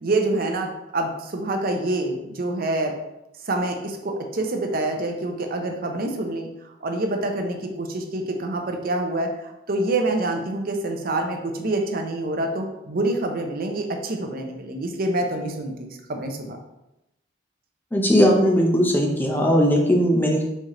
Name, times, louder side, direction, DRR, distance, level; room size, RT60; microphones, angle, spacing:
voice 1, 0.0-2.9 3.4-6.5 6.8-16.6, right 2 dB, 50° right, 4 dB, 0.6 m, -26 dB
voice 2, 17.9-20.4, equal, 10° left, 0 dB, 0.6 m, -18 dB
4.2 x 3.2 x 3.7 m, 0.91 s
head